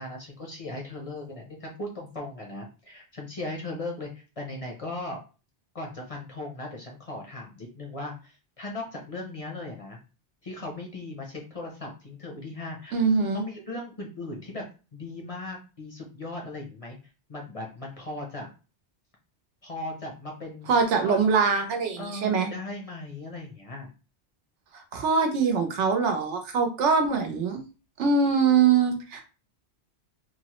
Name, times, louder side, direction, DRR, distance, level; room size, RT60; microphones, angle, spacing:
voice 1, 0.0-5.2 5.7-10.0 10.4-13.0 13.3-14.6 14.9-17.0 17.3-18.5 19.6-20.7 21.0-21.3 22.0-23.9, left 2 dB, 40° left, 0 dB, 0.5 m, -38 dB
voice 2, 12.9-13.4 20.7-22.5 24.7-27.6 28.0-29.2, right 5 dB, 90° right, 5 dB, 1.0 m, -23 dB
3.0 x 2.0 x 2.9 m, 0.33 s
omnidirectional pair, 1.2 m